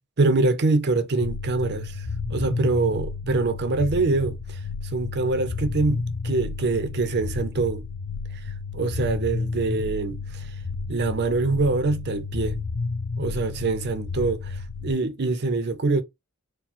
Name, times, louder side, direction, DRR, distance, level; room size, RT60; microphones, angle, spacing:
voice 1, 0.2-4.6 4.9-7.8 8.7-10.5 10.9-12.6 13.2-16.0, right 3 dB, 50° right, 0.6 m, -24 dB
sound 1, 1.2-14.9, left 4 dB, 80° left, 0.6 m, -32 dB
4.5 x 2.1 x 4.2 m
head